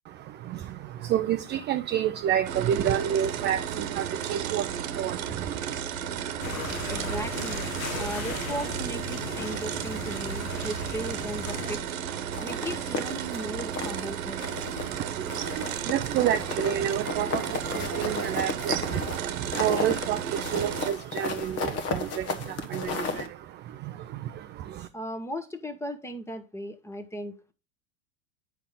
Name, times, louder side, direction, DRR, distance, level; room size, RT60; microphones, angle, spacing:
voice 1, 0.1-5.8 14.7-24.9, right 10 dB, 30° right, 0.4 m, -30 dB
sound 1, 2.5-20.9, right 9 dB, 80° right, 1.2 m, -34 dB
sound 2, 6.4-11.8, left 2 dB, 90° left, 1.7 m, -36 dB
voice 2, 6.9-7.7 8.0-11.9 12.4-14.4 24.9-27.5, right 1 dB, 5° left, 1.1 m, -36 dB
sound 3, 12.3-14.1 14.4-15.0 15.3-23.3, left 4 dB, 35° left, 1.2 m, -34 dB
8.2 x 5.5 x 3.7 m
hypercardioid pair, 100°, 41 cm